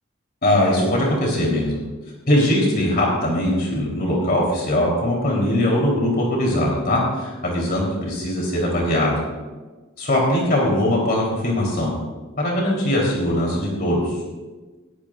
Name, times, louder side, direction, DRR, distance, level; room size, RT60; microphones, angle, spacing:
voice 1, 0.4-1.8 2.3-9.2 10.0-11.9 12.4-14.2, left 1 dB, 45° left, -2 dB, 3.4 m, -21 dB
20.0 x 15.0 x 2.5 m, 1.3 s
head